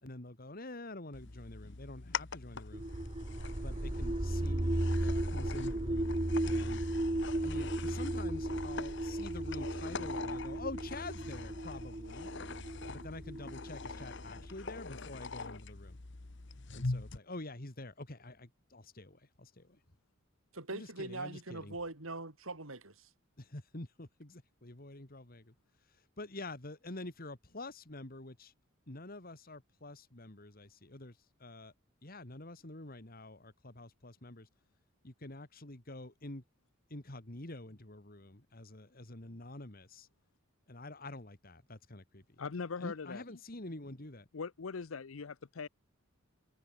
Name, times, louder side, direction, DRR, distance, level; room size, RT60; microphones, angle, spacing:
voice 1, 0.0-2.8 3.6-6.8 7.4-12.3 12.9-16.0 16.7-19.8 20.7-21.8 23.4-25.5 26.2-28.5 28.9-31.7 32.0-34.5 35.0-36.4 36.9-40.1 40.7-42.2 42.8-44.3, left 2 dB, 45° left, 2.4 m, -47 dB
sound 1, 1.1-17.2, left 4 dB, 60° left, 1.2 m, -44 dB
sound 2, 2.7-14.5, right 1 dB, 25° right, 1.0 m, -35 dB
voice 2, 20.5-23.1, right 2 dB, 85° right, 4.0 m, -42 dB
voice 3, 42.4-43.2 44.3-45.7, left 5 dB, 80° left, 0.7 m, -41 dB
head